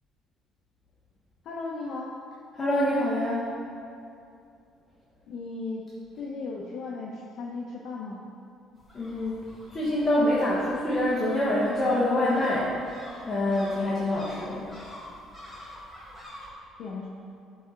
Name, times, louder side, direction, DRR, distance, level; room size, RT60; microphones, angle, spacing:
voice 1, 1.4-2.2 5.3-5.9 6.2-8.3 16.8-17.1, left 3 dB, 55° left, -4 dB, 0.8 m, -36 dB
voice 2, 2.5-3.5 8.9-9.4 9.7-14.7, left 1 dB, 20° left, -8 dB, 1.1 m, -26 dB
sound 1, 8.7-16.5, left 1 dB, ahead, 1.5 m, -48 dB
11.5 x 4.1 x 3.8 m, 2.5 s
cardioid pair, 160°, 0 cm